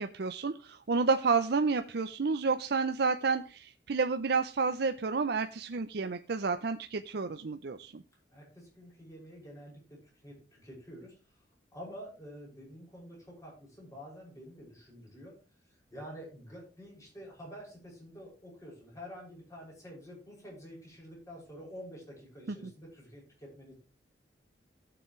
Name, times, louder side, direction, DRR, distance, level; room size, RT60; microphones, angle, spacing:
voice 1, 0.0-8.0, right 4 dB, 65° right, 8 dB, 0.6 m, -30 dB
voice 2, 8.3-10.0 10.2-11.4 11.7-15.3 15.7-23.7, equal, 20° left, -4 dB, 6.3 m, -48 dB
16.5 x 6.9 x 3.2 m, 0.34 s
head